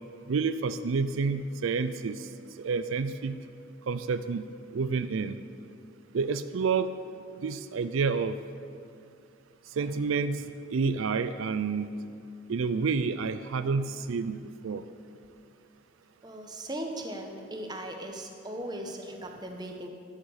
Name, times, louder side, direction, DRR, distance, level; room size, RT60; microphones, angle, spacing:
voice 1, 0.3-2.3 2.6-3.4 3.9-4.4 4.7-5.4 6.1-6.9 7.4-8.3 9.8-10.4 10.7-11.9 12.5-14.4 14.6-14.8, right 5 dB, 80° right, 11 dB, 0.4 m, -29 dB
voice 2, 16.2-19.9, right 1 dB, 20° right, 3 dB, 1.0 m, -38 dB
12.5 x 7.5 x 6.5 m, 2.3 s
head